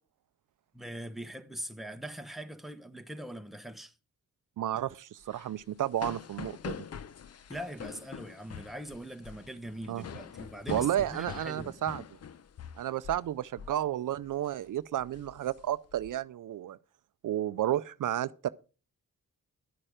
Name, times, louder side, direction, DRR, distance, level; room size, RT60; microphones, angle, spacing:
voice 1, 0.7-4.0 7.5-11.8, right 1 dB, ahead, 1.1 m, -42 dB
voice 2, 4.6-6.8 9.9-10.0 10.7-12.0 12.8-16.8 17.2-18.5, right 12 dB, 70° right, 0.5 m, -32 dB
sound 1, 5.2-13.3 13.6-13.8 14.2-14.5 15.0-16.1, left 7 dB, 50° left, 0.7 m, -44 dB
11.5 x 8.8 x 4.9 m
cardioid pair, 90°, 33 cm